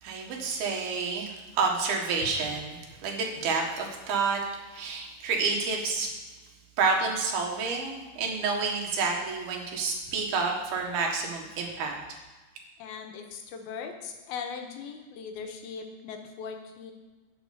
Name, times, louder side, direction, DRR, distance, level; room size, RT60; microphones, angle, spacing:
voice 1, 0.0-4.4 4.7-6.1 6.8-12.0, right 4 dB, 85° right, 1 dB, 3.7 m, -29 dB
voice 2, 12.8-16.9, left 6 dB, 90° left, 4 dB, 3.1 m, -39 dB
9.1 x 9.0 x 6.8 m, 1.2 s
omnidirectional pair, 4.2 m